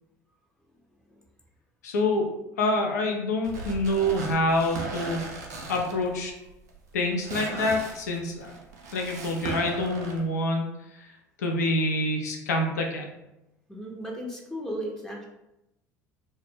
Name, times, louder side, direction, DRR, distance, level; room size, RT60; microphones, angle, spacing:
voice 1, 1.8-2.3 2.6-5.2 5.7-6.3 6.9-8.5 8.9-10.7 11.0-11.1 11.4-13.1, left 1 dB, 80° left, 2 dB, 0.4 m, -26 dB
sound 1, 3.4-10.2, right 3 dB, 80° right, 0.5 m, -38 dB
voice 2, 13.7-15.2, equal, 5° left, -2 dB, 0.5 m, -35 dB
2.1 x 2.0 x 3.2 m, 0.91 s
hypercardioid pair, 65°, 9 cm